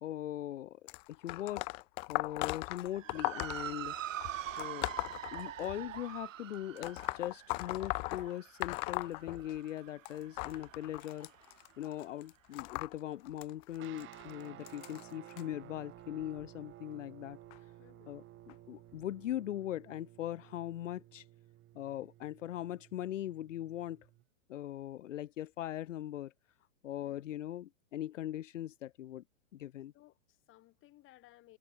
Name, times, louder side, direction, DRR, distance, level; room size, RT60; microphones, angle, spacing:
voice 1, 0.0-4.0 4.6-4.9 5.3-11.5 11.8-17.4 18.1-21.3 21.7-24.1 24.5-26.3 26.8-29.2 29.5-29.9, left 12 dB, 70° left, 1.9 m, -40 dB
sound 1, 0.9-6.0 6.8-9.8 10.1-15.4 16.2-16.5 17.5-17.6 18.5-18.6 19.3-19.4, left 28 dB, 15° left, 0.3 m, -39 dB
Motor vehicle (road) / Siren, 2.9-11.5, right 12 dB, 75° right, 1.3 m, -45 dB
sound 2, 13.7-24.2, right 15 dB, 30° right, 7.9 m, -55 dB
voice 2, 17.8-18.2 27.0-27.4 29.9-31.6, left 16 dB, 30° left, 5.1 m, -62 dB
hypercardioid pair, 130°, 39 cm